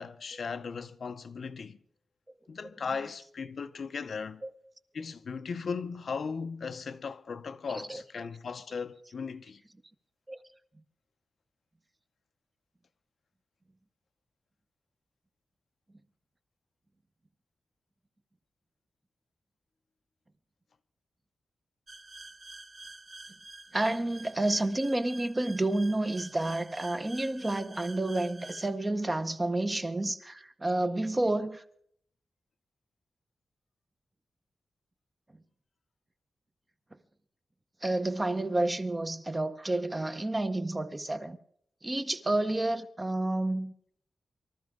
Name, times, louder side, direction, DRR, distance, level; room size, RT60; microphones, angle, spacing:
voice 1, 0.0-1.8 2.5-4.4 4.9-9.6, left 5 dB, 55° left, 0.6 m, -37 dB
sound 1, 21.9-28.7, right 2 dB, 35° right, 1.5 m, -48 dB
voice 2, 23.7-31.6 37.8-41.4 41.8-43.7, right 2 dB, 20° right, 0.8 m, -30 dB
24.5 x 13.0 x 3.7 m
wide cardioid pair, 150°, 0 cm